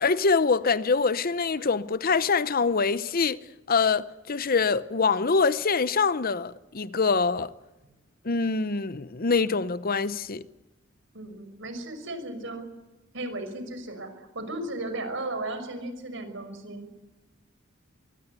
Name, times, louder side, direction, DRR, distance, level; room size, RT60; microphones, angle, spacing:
voice 1, 0.0-3.4 3.7-7.5 8.2-10.4, left 4 dB, 45° left, 0.8 m, -24 dB
voice 2, 11.1-12.6 13.1-16.9, right 2 dB, 65° right, 5.7 m, -35 dB
24.0 x 23.5 x 8.2 m
head